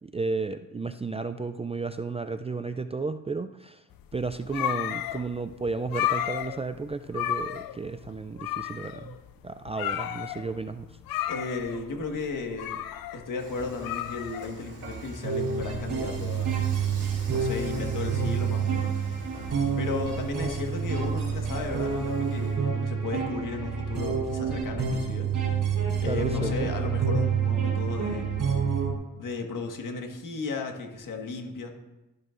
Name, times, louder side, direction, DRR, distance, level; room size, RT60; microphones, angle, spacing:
voice 1, 0.0-3.8 4.1-9.2 9.4-10.9 11.2-11.3 26.1-26.7, right 4 dB, 20° right, 9 dB, 0.3 m, -33 dB
sound 1, 4.0-15.0, left 11 dB, 80° left, 0.6 m, -33 dB
voice 2, 11.3-12.8 13.1-16.6 17.3-19.0 19.8-25.3 26.0-28.3 29.2-31.7, left 4 dB, 65° left, 3 dB, 1.6 m, -35 dB
Dishes pots and pans / Frying (food), 13.4-22.6, right 3 dB, 45° right, 3.0 m, -46 dB
sound 2, 15.2-28.9, right 6 dB, 60° right, 3.5 m, -28 dB
12.5 x 11.0 x 2.5 m, 1.0 s
cardioid pair, 90°, 34 cm